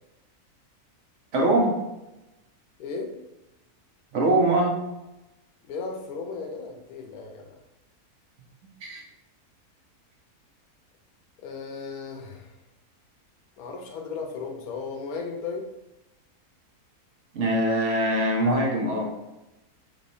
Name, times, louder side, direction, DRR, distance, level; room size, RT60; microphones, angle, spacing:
voice 1, 1.3-1.8 4.1-4.8 8.8-9.0 17.3-19.1, right 1 dB, 60° right, -1 dB, 1.0 m, -22 dB
voice 2, 2.8-3.1 5.6-7.5 11.4-12.5 13.6-15.6, left 4 dB, 75° left, 2 dB, 1.1 m, -35 dB
4.2 x 3.0 x 2.6 m, 0.98 s
omnidirectional pair, 1.6 m